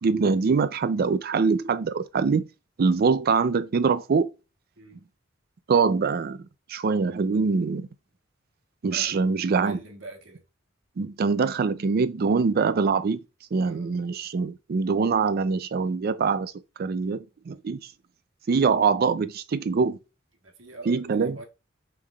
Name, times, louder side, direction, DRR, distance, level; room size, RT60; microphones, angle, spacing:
voice 1, 0.0-2.5 2.8-4.3 5.7-6.4 6.7-7.9 8.8-9.8 11.0-13.2 13.5-16.5 16.8-17.9 18.5-20.0 20.9-21.4, right 5 dB, 50° right, 0.4 m, -24 dB
voice 2, 8.9-10.4 13.6-13.9 20.4-21.4, right 2 dB, 80° right, 1.2 m, -44 dB
5.5 x 3.4 x 2.3 m
head